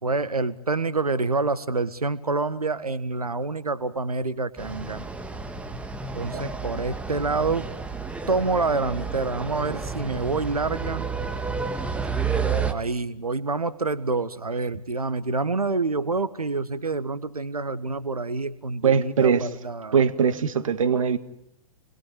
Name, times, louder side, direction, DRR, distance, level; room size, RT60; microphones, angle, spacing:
voice 1, 0.0-5.1 6.1-7.7 8.3-11.1 12.7-20.0, right 3 dB, 80° right, 15 dB, 1.5 m, -27 dB
sound 1, 4.6-12.7, right 5 dB, 5° right, 2.0 m, -31 dB
voice 2, 18.8-19.5 19.9-21.2, right 6 dB, 65° right, 12 dB, 1.8 m, -21 dB
28.5 x 21.5 x 8.9 m, 0.80 s
figure-of-eight pair, 105°, 19 cm